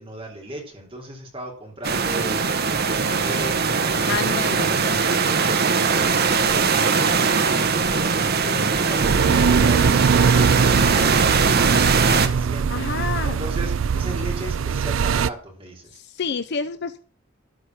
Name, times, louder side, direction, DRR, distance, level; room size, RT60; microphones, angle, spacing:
voice 1, 0.0-16.0, right 1 dB, 30° right, -1 dB, 3.4 m, -37 dB
sound 1, 1.8-12.3, right 5 dB, 55° right, 1.1 m, -21 dB
voice 2, 4.1-4.7 12.7-13.4 15.9-17.0, left 5 dB, 55° left, 11 dB, 0.5 m, -28 dB
sound 2, 9.0-15.3, right 6 dB, 70° right, 0.4 m, -21 dB
13.0 x 4.9 x 7.2 m, 0.44 s
head